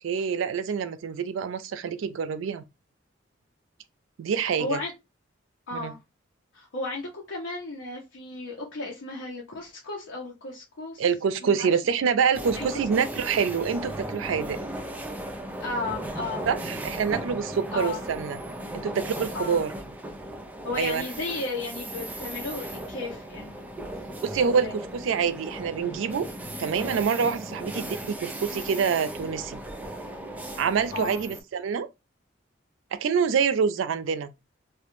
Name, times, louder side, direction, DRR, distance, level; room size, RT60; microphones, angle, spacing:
voice 1, 0.0-2.6 4.2-4.8 5.7-5.9 11.0-14.6 16.5-18.4 18.8-19.7 20.8-21.1 24.2-26.3 26.6-29.6 30.6-31.9 32.9-34.3, right 6 dB, 85° right, 0.3 m, -26 dB
voice 2, 4.6-4.9 5.7-6.0 6.5-11.0 11.4-11.7 12.5-12.7 13.0-13.3 15.6-16.5 17.7-18.0 19.3-19.7 20.6-23.5 23.8-24.0 24.6-24.7 30.9-31.2, left 3 dB, 80° left, 0.6 m, -34 dB
sound 1, 12.3-31.4, right 1 dB, 10° right, 0.3 m, -37 dB
2.2 x 2.1 x 2.9 m
head